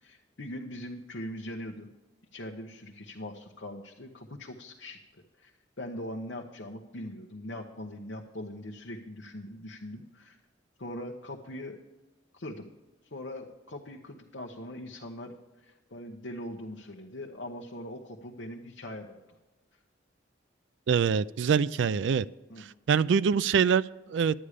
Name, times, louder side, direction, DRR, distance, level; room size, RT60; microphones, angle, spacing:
voice 1, 0.0-1.9 2.3-5.5 5.8-10.4 10.8-11.8 12.3-12.7 13.1-19.2 22.5-22.7, left 1 dB, 75° left, 0 dB, 1.0 m, -41 dB
voice 2, 20.9-22.3 22.6-24.5, right 6 dB, 70° right, 18 dB, 0.3 m, -25 dB
11.0 x 9.8 x 5.0 m, 1.1 s
head